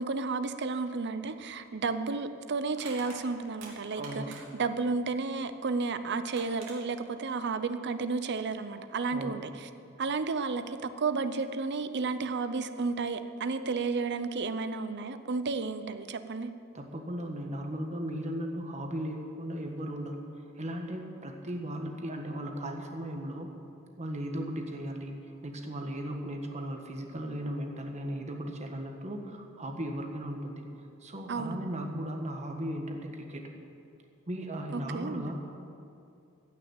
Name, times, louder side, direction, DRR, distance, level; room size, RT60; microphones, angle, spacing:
voice 1, 0.0-9.7 10.0-16.5 31.3-31.6 34.7-35.2, right 4 dB, 55° right, 11 dB, 0.7 m, -32 dB
Crushing, 1.4-1.5 2.7-4.7 5.9-6.0 6.3-6.8, right 3 dB, 85° right, 2.6 m, -47 dB
voice 2, 4.0-4.4 9.1-9.4 16.7-20.2 20.6-23.5 24.0-25.2 25.4-30.7 31.0-33.5 34.3-35.4, right 1 dB, 35° right, 3 dB, 1.4 m, -36 dB
15.5 x 6.3 x 9.0 m, 2.5 s
head